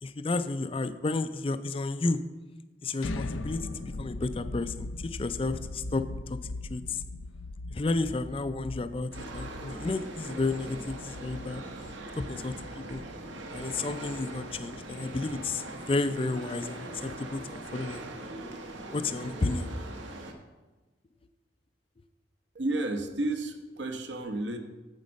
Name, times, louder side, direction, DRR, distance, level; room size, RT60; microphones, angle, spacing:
voice 1, 0.0-2.2 2.8-6.4 6.7-7.0 7.7-11.6 12.2-13.0 13.5-18.1 18.9-19.8, left 3 dB, 30° left, 11 dB, 0.4 m, -32 dB
sound 1, 3.0-14.8, left 2 dB, 85° left, 0.5 m, -40 dB
sound 2, 9.1-20.3, right 2 dB, 80° right, 1.2 m, -41 dB
voice 2, 22.5-24.6, right 2 dB, 65° right, 4 dB, 0.9 m, -31 dB
9.1 x 7.3 x 5.3 m, 1.2 s
head